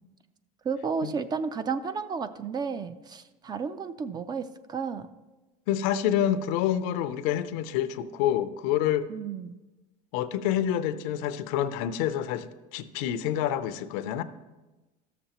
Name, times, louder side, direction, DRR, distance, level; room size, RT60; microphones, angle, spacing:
voice 1, 0.6-5.1 9.1-9.5, right 5 dB, 25° right, 13 dB, 0.3 m, -32 dB
voice 2, 5.7-9.1 10.1-14.2, left 10 dB, 85° left, 12 dB, 0.5 m, -27 dB
13.5 x 6.8 x 2.9 m, 1.1 s
cardioid pair, 125°, 17 cm